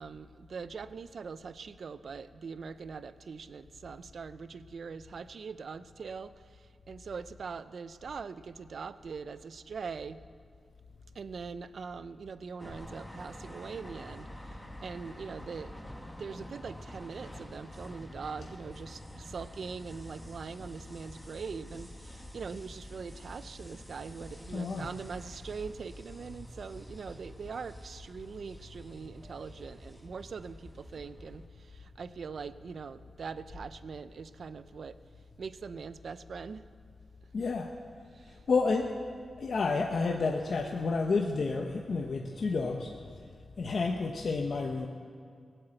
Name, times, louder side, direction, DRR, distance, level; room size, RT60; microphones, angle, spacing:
voice 1, 0.0-10.2 11.1-15.8 16.2-35.0 35.4-36.7 38.1-38.4, right 5 dB, 70° right, 14 dB, 0.5 m, -42 dB
sound 1, 12.6-31.5, equal, 5° left, 1.5 m, -48 dB
voice 2, 24.5-24.9 37.3-37.7 38.3-38.9 39.4-42.9 43.6-44.9, left 4 dB, 65° left, 2 dB, 0.9 m, -30 dB
18.0 x 7.9 x 7.9 m, 2.2 s
cardioid pair, 75°, 0 cm